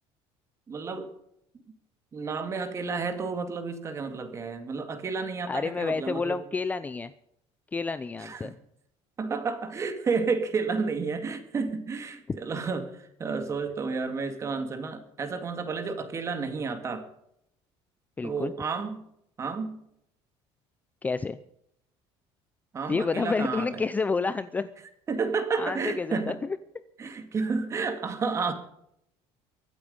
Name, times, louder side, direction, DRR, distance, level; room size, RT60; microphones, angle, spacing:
voice 1, 0.7-1.1 2.1-6.4 8.2-8.5 9.2-17.0 18.2-19.0 19.4-19.8 22.7-23.8 25.1-26.4 27.0-28.5, right 4 dB, 25° right, 8 dB, 2.2 m, -31 dB
voice 2, 5.5-7.1 7.7-8.5 18.2-18.5 21.0-21.4 22.9-24.7 25.6-26.6, left 4 dB, 15° left, 13 dB, 0.5 m, -29 dB
23.5 x 8.6 x 5.3 m, 0.75 s
cardioid pair, 150°, 11 cm